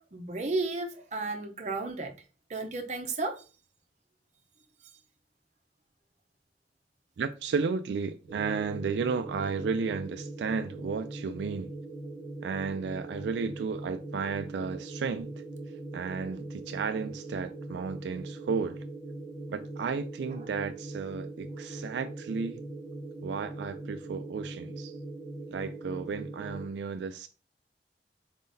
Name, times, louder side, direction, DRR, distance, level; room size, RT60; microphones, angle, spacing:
voice 1, 0.1-2.1 2.5-3.4, right 3 dB, 40° right, 0.7 m, -33 dB
voice 2, 7.2-11.7 12.4-15.4 15.9-18.8 19.5-22.6 23.2-24.9 25.5-27.3, right 5 dB, 80° right, 0.3 m, -33 dB
sound 1, 8.3-26.7, right 2 dB, 40° left, 1.1 m, -41 dB
4.4 x 3.7 x 2.6 m
head